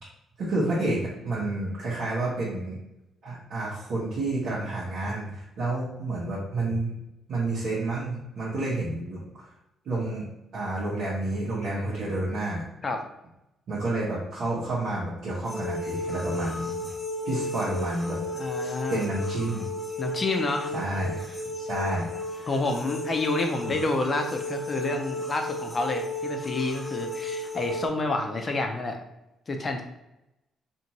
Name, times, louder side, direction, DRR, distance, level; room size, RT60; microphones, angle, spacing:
voice 1, 0.4-2.8 3.2-6.9 7.3-9.5 9.8-10.2 10.5-12.6 13.7-16.7 17.2-18.2 18.6-19.7 20.7-22.1 22.4-22.5, right 2 dB, 70° right, -9 dB, 1.0 m, -30 dB
sound 1, 15.4-27.9, left 2 dB, 15° left, 0.9 m, -34 dB
voice 2, 18.3-19.0 20.0-20.7 22.5-29.0 29.5-29.8, left 2 dB, 40° left, 4 dB, 0.6 m, -29 dB
2.6 x 2.5 x 2.9 m, 0.90 s
hypercardioid pair, 50°, 0 cm